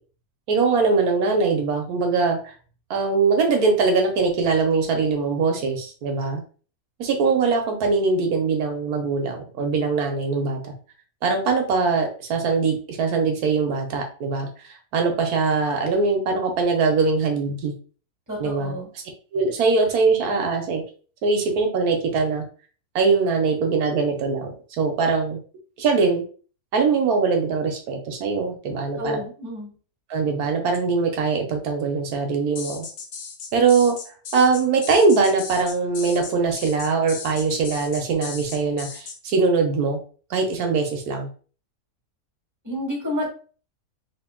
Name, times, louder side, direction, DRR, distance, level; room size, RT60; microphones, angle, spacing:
voice 1, 0.5-2.5 2.9-6.4 7.0-10.7 11.2-17.7 18.4-18.8 19.3-20.8 21.2-22.4 22.9-24.5 24.8-25.4 25.8-26.2 26.7-29.2 30.1-32.9 33.5-34.0 34.3-40.0 40.3-41.3, right 4 dB, 85° right, 3 dB, 1.3 m, -22 dB
voice 2, 18.3-18.9 29.0-29.7 42.6-43.3, left 1 dB, 10° right, -4 dB, 1.6 m, -29 dB
sound 1, 32.6-39.2, left 5 dB, 80° left, 1.3 m, -36 dB
3.5 x 2.6 x 3.6 m, 0.39 s
omnidirectional pair, 1.6 m